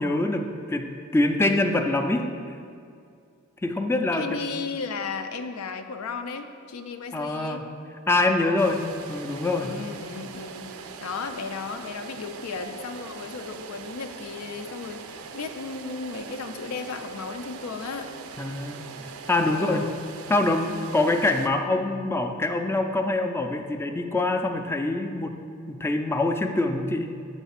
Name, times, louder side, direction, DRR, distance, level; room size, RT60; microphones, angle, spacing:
voice 1, 0.0-2.6 3.6-4.3 7.1-7.6 8.1-8.8 9.1-9.8 18.4-18.8 19.3-19.9 20.3-25.3 25.7-27.1, left 2 dB, 10° left, 5 dB, 0.3 m, -25 dB
voice 2, 4.1-7.6 8.4-8.8 9.6-10.7 11.0-18.1 19.5-20.0 20.7-21.0, left 4 dB, 85° left, 7 dB, 0.4 m, -35 dB
sound 1, 8.6-21.5, right 5 dB, 75° right, 0.4 m, -41 dB
7.2 x 3.3 x 5.6 m, 2.3 s
head